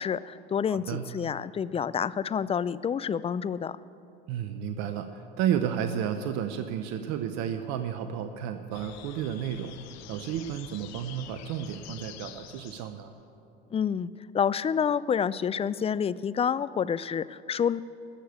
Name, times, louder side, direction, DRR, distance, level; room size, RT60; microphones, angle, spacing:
voice 1, 0.0-3.8 13.7-17.8, left 7 dB, 20° left, 17 dB, 0.3 m, -28 dB
voice 2, 0.7-1.1 4.3-9.7 10.1-13.1, right 9 dB, 60° right, 9 dB, 0.8 m, -32 dB
sound 1, 8.7-13.1, left 11 dB, 60° left, 1.0 m, -47 dB
18.5 x 6.8 x 8.0 m, 2.7 s
hypercardioid pair, 75°, 30 cm